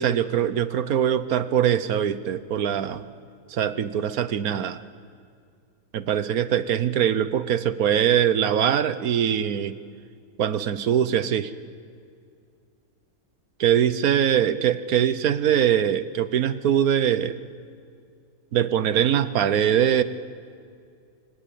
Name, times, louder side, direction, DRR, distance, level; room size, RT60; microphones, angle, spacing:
voice 1, 0.0-3.0 3.5-4.8 5.9-9.8 10.4-11.5 13.6-17.4 18.5-20.0, right 9 dB, 75° right, 13 dB, 1.4 m, -22 dB
28.0 x 24.5 x 8.5 m, 2.3 s
omnidirectional pair, 1.6 m